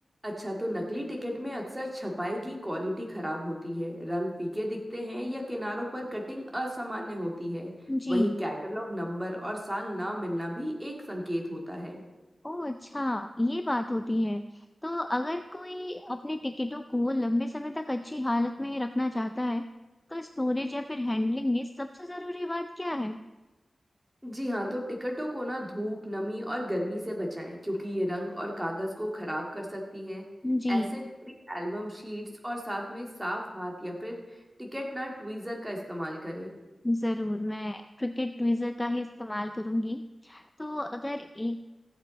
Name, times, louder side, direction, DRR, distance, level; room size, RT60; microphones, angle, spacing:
voice 1, 0.2-7.7 8.1-12.0 24.2-30.3 30.7-31.1 31.5-36.5, equal, 10° right, 0 dB, 2.1 m, -34 dB
voice 2, 7.9-8.3 12.4-19.7 20.1-23.2 30.4-31.0 36.8-41.6, left 1 dB, 15° left, 8 dB, 0.4 m, -30 dB
15.0 x 8.4 x 4.0 m, 1.1 s
wide cardioid pair, 110°, 0 cm